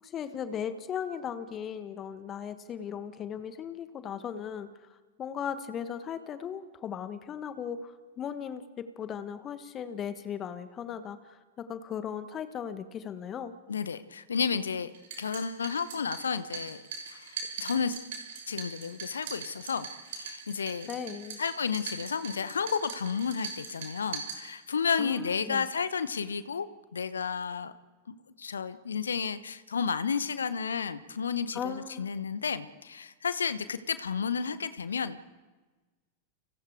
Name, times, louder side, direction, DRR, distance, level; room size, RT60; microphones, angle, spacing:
voice 1, 0.0-4.7 5.2-13.6 20.9-21.4 25.0-25.6 31.5-32.1, left 8 dB, 30° left, 11 dB, 1.5 m, -37 dB
voice 2, 13.7-14.9 15.2-18.0 18.5-20.9 21.4-27.7 28.1-35.2, left 6 dB, 70° left, 14 dB, 1.0 m, -32 dB
sound 1, 14.9-24.9, right 5 dB, 60° right, 6.0 m, -42 dB
30.0 x 25.0 x 4.8 m, 1.3 s
figure-of-eight pair, 90°, 0 cm